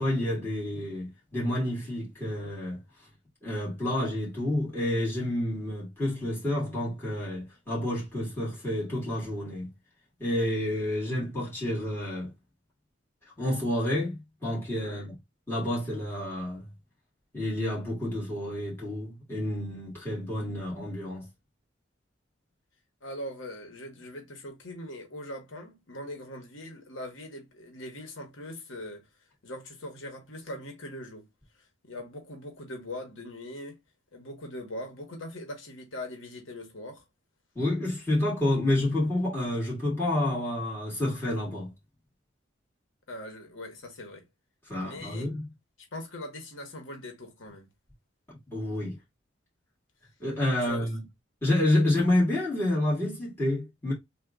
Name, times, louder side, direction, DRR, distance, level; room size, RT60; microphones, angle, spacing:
voice 1, 0.0-2.8 3.4-9.7 10.2-12.3 13.4-14.2 14.4-15.1 15.5-16.7 17.3-21.3 37.6-41.7 44.7-45.5 48.5-49.0 50.2-51.0 51.4-53.9, left 1 dB, 10° left, 2.0 m, -29 dB
voice 2, 14.8-15.1 23.0-29.1 29.4-31.3 31.5-33.8 34.1-37.0 43.1-44.2 44.8-45.3 45.9-47.7 50.6-50.9, left 1 dB, 80° left, 1.2 m, -41 dB
3.5 x 2.5 x 3.7 m
head